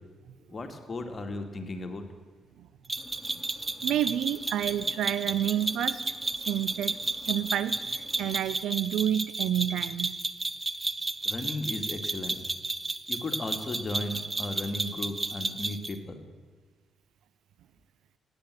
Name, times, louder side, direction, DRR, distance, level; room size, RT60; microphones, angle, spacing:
voice 1, 0.5-2.1 11.2-12.4 13.1-16.2, left 2 dB, 40° left, 5 dB, 2.1 m, -35 dB
sound 1, 2.9-16.0, right 2 dB, 25° right, 0.9 m, -32 dB
sound 2, 3.0-8.4, left 2 dB, 15° left, 2.6 m, -52 dB
voice 2, 3.8-6.1 6.5-7.0 7.3-10.2, right 11 dB, 70° right, 15 dB, 0.6 m, -29 dB
17.0 x 9.5 x 7.6 m, 1.4 s
hypercardioid pair, 40°, 0 cm